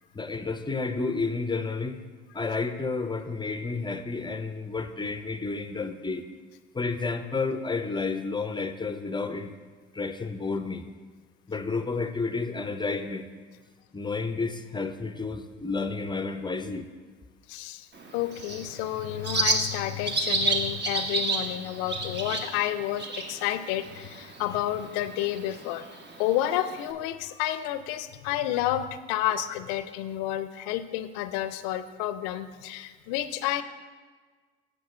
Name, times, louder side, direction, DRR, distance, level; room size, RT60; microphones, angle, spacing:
voice 1, 0.1-2.0 2.3-6.2 6.7-9.6 9.9-10.8 11.5-13.3 13.9-16.9, left 4 dB, 15° left, 9 dB, 0.5 m, -31 dB
voice 2, 17.5-17.9 18.1-25.9 26.2-33.6, left 12 dB, 85° left, 12 dB, 0.5 m, -30 dB
Bird, 17.9-26.9, right 2 dB, 35° right, 1.1 m, -32 dB
7.7 x 6.6 x 4.3 m, 1.5 s
supercardioid pair, 70°, 29 cm